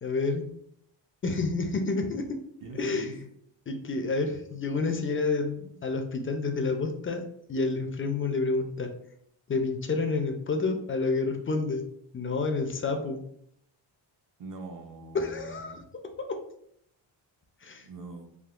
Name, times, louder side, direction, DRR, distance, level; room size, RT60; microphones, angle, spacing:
voice 1, 0.0-0.4 1.2-2.4 2.8-3.1 3.7-7.2 7.5-8.9 9.5-11.8 12.1-13.2 15.1-15.7 17.6-17.8, left 3 dB, 30° left, 5 dB, 0.4 m, -29 dB
voice 2, 2.6-3.1 14.4-15.8 17.8-18.3, right 3 dB, 45° right, 4 dB, 0.6 m, -42 dB
3.5 x 2.4 x 2.4 m, 0.70 s
cardioid pair, 95°, 47 cm